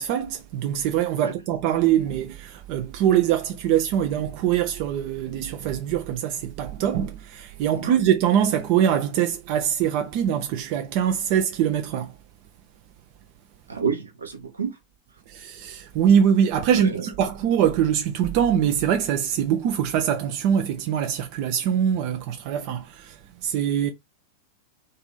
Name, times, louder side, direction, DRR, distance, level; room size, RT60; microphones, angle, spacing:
voice 1, 0.0-12.1 15.3-23.9, right 9 dB, 45° right, 0.4 m, -23 dB
voice 2, 13.7-14.7 16.7-17.0, right 6 dB, 75° right, 0.8 m, -29 dB
2.6 x 2.5 x 3.9 m
figure-of-eight pair, 90°, 0 cm